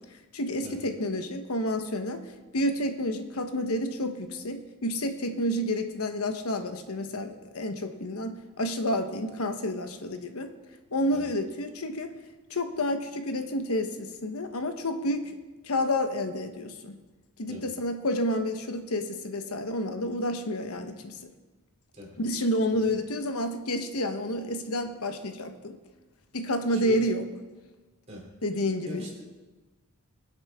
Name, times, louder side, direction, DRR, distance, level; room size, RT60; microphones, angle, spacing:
voice 1, 0.3-2.3 2.5-10.5 10.9-12.1 12.5-15.3 15.6-17.0 17.4-21.2 22.2-25.8 26.3-27.2 28.4-29.1, left 1 dB, 80° left, 7 dB, 1.1 m, -29 dB
voice 2, 26.7-27.0 28.1-28.3 28.8-29.2, left 2 dB, 30° right, -1 dB, 3.1 m, -41 dB
22.5 x 8.0 x 3.6 m, 1.2 s
head